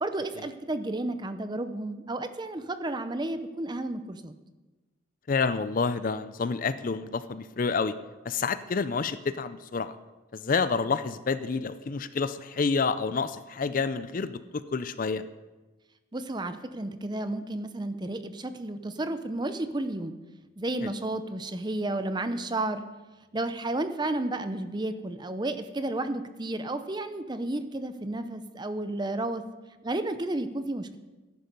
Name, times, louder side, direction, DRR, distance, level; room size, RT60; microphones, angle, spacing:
voice 1, 0.0-4.3 16.1-20.1 20.6-22.8 23.3-29.4 29.8-31.0, right 2 dB, 20° right, 10 dB, 0.6 m, -32 dB
voice 2, 5.3-8.0 8.2-10.0 10.3-15.2 20.8-20.9, left 4 dB, 40° left, 13 dB, 0.4 m, -29 dB
13.5 x 10.5 x 5.3 m, 1.2 s
head